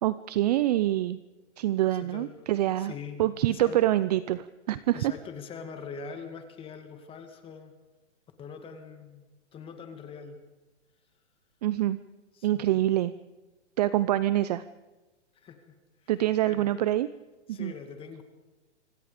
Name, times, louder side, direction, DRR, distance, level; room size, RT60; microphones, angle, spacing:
voice 1, 0.0-1.2 1.6-2.9 3.2-5.1 11.6-12.0 12.4-13.1 13.8-14.6 16.1-17.1 17.5-17.7, right 13 dB, 35° right, 15 dB, 0.7 m, -25 dB
voice 2, 2.0-2.4 2.8-3.2 3.5-3.8 4.9-7.8 8.4-10.4 12.4-12.9 15.3-16.1 16.4-16.7 17.5-18.2, left 6 dB, 15° left, 7 dB, 2.2 m, -43 dB
26.0 x 25.5 x 5.1 m, 1.2 s
hypercardioid pair, 150°, 35 cm